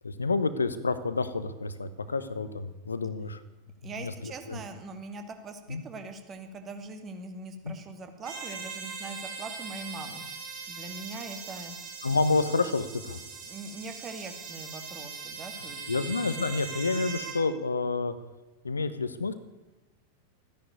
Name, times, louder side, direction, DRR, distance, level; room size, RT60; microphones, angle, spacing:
voice 1, 0.0-3.4 3.8-4.6 5.7-5.8 7.6-7.8 12.0-13.2 15.9-18.1 18.6-19.3, left 3 dB, 75° left, 13 dB, 1.0 m, -29 dB
voice 2, 3.8-10.2 10.7-11.8 13.4-16.1, right 3 dB, 25° right, 6 dB, 2.2 m, -42 dB
sound 1, 8.2-17.4, right 5 dB, 55° right, 5.4 m, -40 dB
14.0 x 10.5 x 9.3 m, 1.1 s
figure-of-eight pair, 90°, 0 cm